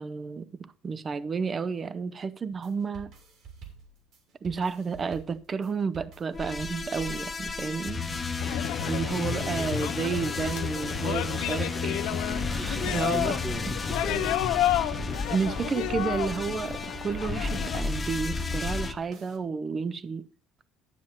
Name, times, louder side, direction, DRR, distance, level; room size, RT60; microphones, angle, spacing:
voice 1, 0.0-3.1 4.4-8.0 8.8-12.1 12.5-13.4 15.3-20.3, right 5 dB, 30° right, 0.6 m, -31 dB
sound 1, 2.5-19.4, right 6 dB, 60° right, 2.9 m, -48 dB
sound 2, 6.3-18.9, left 4 dB, 20° left, 1.0 m, -33 dB
sound 3, 8.4-17.8, left 14 dB, 80° left, 0.8 m, -31 dB
voice 2, 9.1-9.8 12.3-15.2, right 1 dB, 5° right, 0.9 m, -40 dB
11.5 x 7.3 x 4.4 m
cardioid pair, 125°, 0 cm